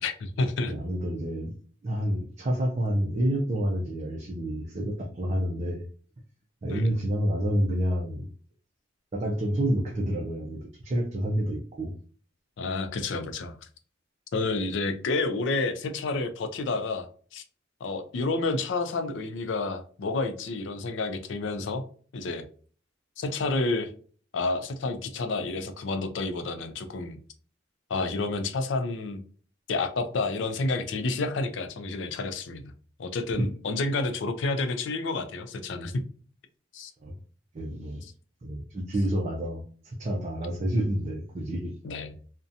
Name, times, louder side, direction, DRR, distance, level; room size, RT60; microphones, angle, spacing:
voice 1, 0.0-0.7 6.7-6.9 12.6-13.6 14.3-17.1 17.3-17.4 17.8-21.8 22.1-22.5 23.2-23.9 24.3-27.2 27.9-29.2 29.7-32.7 33.0-36.0 36.7-36.9 41.8-42.1, left 3 dB, 70° left, 9 dB, 0.4 m, -29 dB
voice 2, 0.7-1.5 1.8-5.8 6.6-8.3 9.1-11.9 33.4-33.5 37.0-37.1 37.5-38.1 38.4-41.7, equal, 35° right, -1 dB, 0.4 m, -28 dB
2.7 x 2.1 x 2.4 m, 0.44 s
head